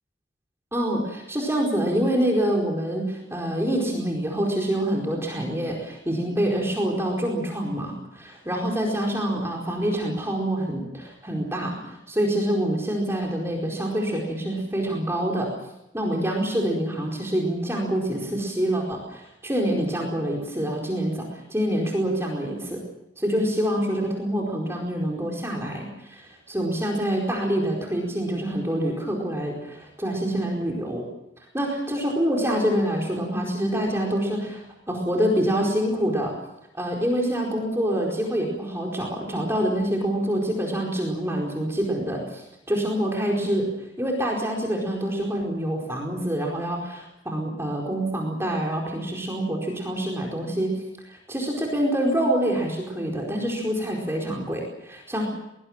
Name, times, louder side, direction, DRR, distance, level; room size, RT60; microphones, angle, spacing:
voice 1, 0.7-15.5 15.9-22.8 23.2-31.0 31.5-36.3 36.7-43.6 44.0-55.3, right 1 dB, 15° right, -1 dB, 4.6 m, -26 dB
24.0 x 20.0 x 7.4 m, 0.89 s
head